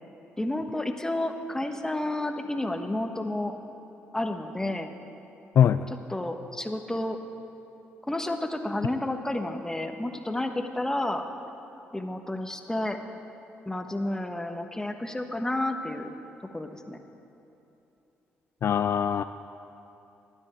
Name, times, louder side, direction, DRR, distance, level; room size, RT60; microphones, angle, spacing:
voice 1, 0.4-3.6 4.1-4.9 6.1-7.2 8.0-11.3 11.9-13.0 13.7-16.1 16.5-17.0, left 1 dB, 10° left, 5 dB, 1.3 m, -31 dB
voice 2, 5.6-5.9 18.6-19.2, left 9 dB, 60° left, 11 dB, 0.3 m, -22 dB
13.0 x 9.9 x 7.8 m, 2.9 s
supercardioid pair, 60°, 5 cm